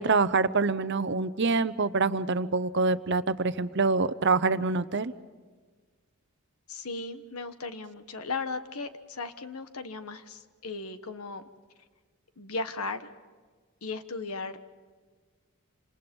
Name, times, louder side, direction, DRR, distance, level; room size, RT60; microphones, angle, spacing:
voice 1, 0.0-5.1, right 4 dB, 55° right, 13 dB, 0.8 m, -26 dB
voice 2, 6.7-11.4 12.4-13.1 13.8-14.6, left 3 dB, 85° left, 10 dB, 1.4 m, -36 dB
27.5 x 27.0 x 5.4 m, 1.5 s
head